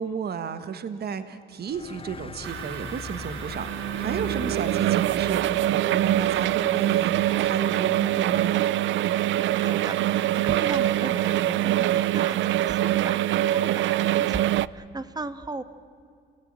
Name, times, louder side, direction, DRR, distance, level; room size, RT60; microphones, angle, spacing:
voice 1, 0.0-8.6, right 6 dB, 55° right, 11 dB, 1.5 m, -33 dB
sound 1, 1.6-8.7, left 5 dB, 25° left, 0.8 m, -42 dB
sound 2, 2.4-14.7, right 13 dB, 70° right, 0.5 m, -24 dB
voice 2, 9.4-15.6, right 2 dB, 20° right, 12 dB, 1.5 m, -37 dB
29.0 x 17.5 x 8.8 m, 2.3 s
cardioid pair, 90°, 20 cm